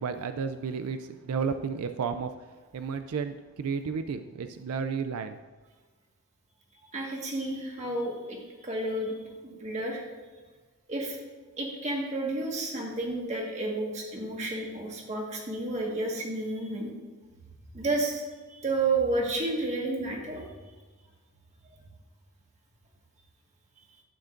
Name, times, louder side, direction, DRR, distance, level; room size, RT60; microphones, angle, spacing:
voice 1, 0.0-2.3 2.7-5.4, right 6 dB, 85° right, 9 dB, 0.4 m, -32 dB
voice 2, 6.9-9.2 9.4-10.1 10.9-11.2 11.6-16.9 17.7-18.2 18.5-20.4, right 2 dB, 30° right, -1 dB, 1.6 m, -31 dB
11.5 x 8.8 x 2.6 m, 1.4 s
head